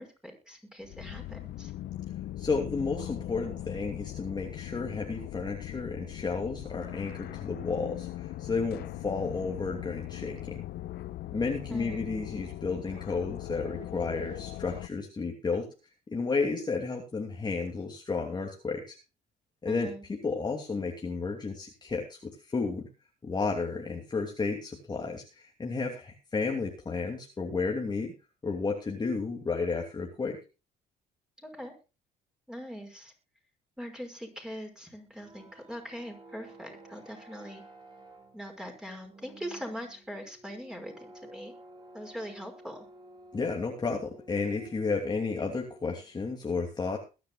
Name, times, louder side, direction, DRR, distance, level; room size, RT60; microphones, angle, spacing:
voice 1, 0.0-1.7 11.7-12.1 19.7-20.0 31.4-31.7 32.5-33.1 33.8-37.6 38.3-41.5 41.9-42.9, equal, 5° right, 3 dB, 5.6 m, -42 dB
sound 1, 0.8-14.9, left 14 dB, 70° left, 0.9 m, -40 dB
voice 2, 2.4-10.6 11.3-15.7 16.1-19.0 19.6-22.9 23.2-28.1 28.4-30.4 43.3-47.0, left 4 dB, 25° left, 1 dB, 2.7 m, -32 dB
sound 2, 35.0-46.2, right 1 dB, 25° right, 5.6 m, -53 dB
22.0 x 10.0 x 2.4 m, 0.31 s
cardioid pair, 110°, 17 cm